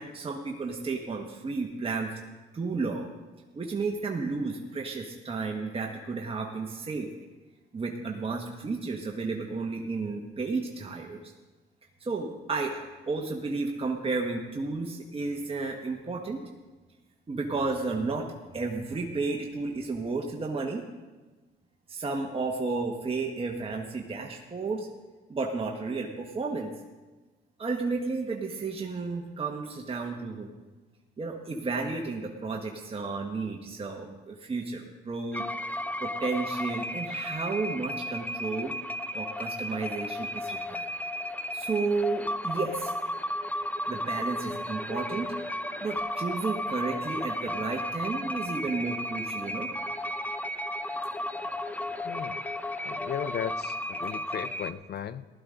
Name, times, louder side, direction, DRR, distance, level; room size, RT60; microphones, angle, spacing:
voice 1, 0.0-2.1 2.5-3.1 3.5-7.1 7.7-11.3 12.0-12.8 13.1-16.4 17.3-18.3 18.5-20.8 21.9-24.9 25.3-26.7 27.6-30.5 31.2-35.4 36.0-38.7 39.1-40.9 41.5-42.9 43.9-45.3 45.8-49.7, right 3 dB, 30° right, 1 dB, 1.3 m, -32 dB
sound 1, 35.3-54.7, left 1 dB, 10° left, 0.6 m, -34 dB
voice 2, 52.0-52.4 52.8-55.3, left 9 dB, 55° left, 15 dB, 0.6 m, -36 dB
15.5 x 12.0 x 3.8 m, 1.2 s
cardioid pair, 90°, 20 cm